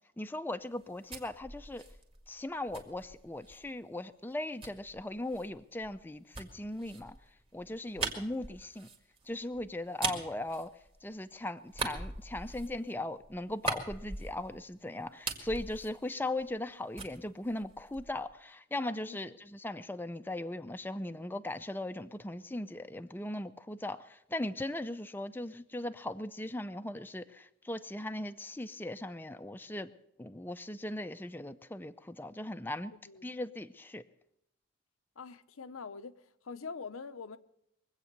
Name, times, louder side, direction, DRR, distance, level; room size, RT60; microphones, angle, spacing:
voice 1, 0.2-1.8 2.3-7.2 7.5-8.9 9.3-10.7 11.0-29.9 30.2-32.9 33.2-34.0, left 1 dB, 10° left, 0.5 m, -38 dB
sound 1, 0.7-3.7 4.6-11.3 11.7-14.7 15.0-16.7 17.0-18.3, right 3 dB, 25° right, 1.9 m, -41 dB
voice 2, 35.2-36.2 36.4-37.4, left 5 dB, 90° left, 0.8 m, -44 dB
22.5 x 8.2 x 6.7 m
head